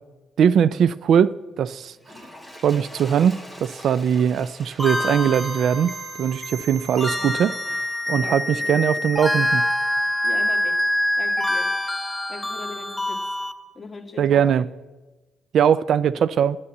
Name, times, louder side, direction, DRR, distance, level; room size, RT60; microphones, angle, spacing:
voice 1, 0.4-2.0 2.6-7.5 8.1-9.6 14.2-14.6 15.5-16.6, right 8 dB, 65° right, 0.3 m, -20 dB
Toilet flush, 1.9-7.4 8.1-8.2, left 1 dB, 15° right, 2.3 m, -45 dB
sound 1, 4.8-13.5, left 1 dB, ahead, 1.0 m, -25 dB
voice 2, 7.2-7.5 8.2-8.7 10.2-10.8 11.2-11.7 12.3-13.2 13.7-14.6, left 3 dB, 25° left, 1.7 m, -39 dB
9.7 x 6.9 x 7.9 m
cardioid pair, 90°, 0 cm